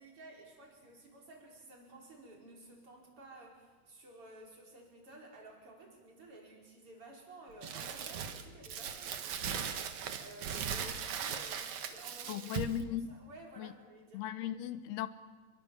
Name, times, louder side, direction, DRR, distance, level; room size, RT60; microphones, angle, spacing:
voice 1, 0.0-14.2, right 2 dB, 35° right, -1 dB, 5.7 m, -54 dB
Crumpling crinkling, 7.6-12.8, right 7 dB, 60° right, 2.4 m, -39 dB
voice 2, 12.3-13.1 13.6-13.7 14.1-15.1, left 11 dB, 80° left, 12 dB, 3.0 m, -37 dB
28.5 x 22.5 x 7.2 m, 1.3 s
omnidirectional pair, 4.6 m